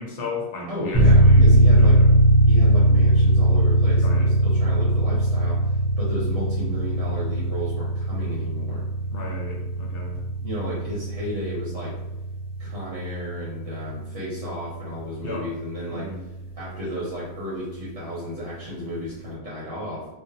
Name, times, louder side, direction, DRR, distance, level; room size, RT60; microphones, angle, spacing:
voice 1, 0.0-2.2 4.0-4.3 9.1-10.2 15.2-15.5 15.9-16.2, left 3 dB, 65° left, -1 dB, 0.7 m, -35 dB
voice 2, 0.7-2.0 2.5-8.8 10.4-11.9 12.6-16.1 16.5-20.1, equal, 75° right, -7 dB, 1.0 m, -33 dB
sound 1, 0.9-15.4, right 1 dB, 30° left, 0.5 m, -20 dB
2.4 x 2.1 x 2.7 m, 1.0 s
omnidirectional pair, 1.2 m